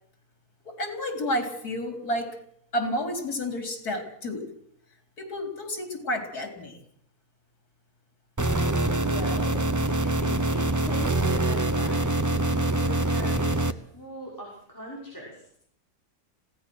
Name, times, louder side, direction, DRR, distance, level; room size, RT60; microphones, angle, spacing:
voice 1, 0.6-2.3 2.7-4.5 5.2-6.8, left 1 dB, 80° left, 5 dB, 4.4 m, -30 dB
sound 1, 8.4-13.7, right 2 dB, 20° right, 0.6 m, -25 dB
voice 2, 9.0-13.7 13.9-15.6, equal, 10° left, -4 dB, 6.0 m, -39 dB
26.0 x 17.5 x 6.4 m, 0.67 s
omnidirectional pair, 1.6 m